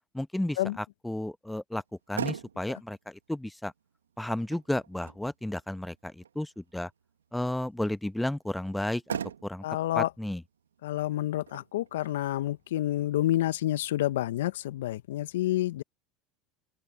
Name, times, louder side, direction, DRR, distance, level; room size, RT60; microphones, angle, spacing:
voice 1, 0.1-1.8 2.1-3.7 4.2-6.9 7.3-9.6 9.9-10.4, left 1 dB, 5° left, 0.9 m, -33 dB
Motor vehicle (road), 1.8-14.7, right 8 dB, 90° right, 1.4 m, -44 dB
voice 2, 9.6-10.1 10.8-15.8, left 14 dB, 75° left, 0.8 m, -29 dB
open air
hypercardioid pair, 85°, 0 cm